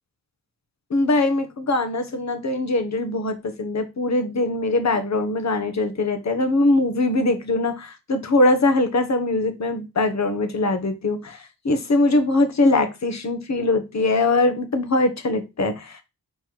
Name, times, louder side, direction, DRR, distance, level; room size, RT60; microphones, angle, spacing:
voice 1, 0.9-16.0, left 2 dB, 50° left, 1.4 m, -22 dB
4.5 x 4.5 x 4.6 m
wide cardioid pair, 95°, 36 cm